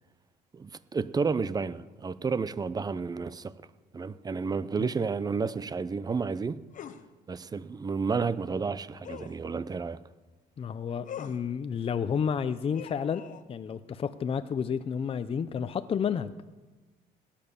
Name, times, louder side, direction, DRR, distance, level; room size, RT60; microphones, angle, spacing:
voice 1, 0.5-3.5 3.9-6.6 7.3-10.0, right 5 dB, 25° right, 0.6 m, -31 dB
sound 1, 6.7-7.0 9.0-9.4 11.0-11.4 12.7-13.4, left 9 dB, 50° left, 1.0 m, -42 dB
voice 2, 10.6-13.2 13.5-16.4, left 7 dB, 35° left, 0.6 m, -31 dB
18.0 x 10.0 x 6.9 m
cardioid pair, 110°, 17 cm